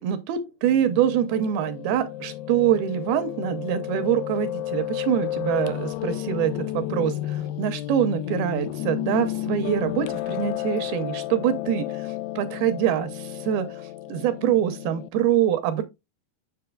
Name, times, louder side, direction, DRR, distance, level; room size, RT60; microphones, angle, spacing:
voice 1, 0.0-15.8, right 10 dB, 80° right, 2.4 m, -25 dB
Piano, 0.6-15.1, left 14 dB, 85° left, 2.5 m, -32 dB
7.8 x 6.3 x 2.3 m
omnidirectional pair, 4.7 m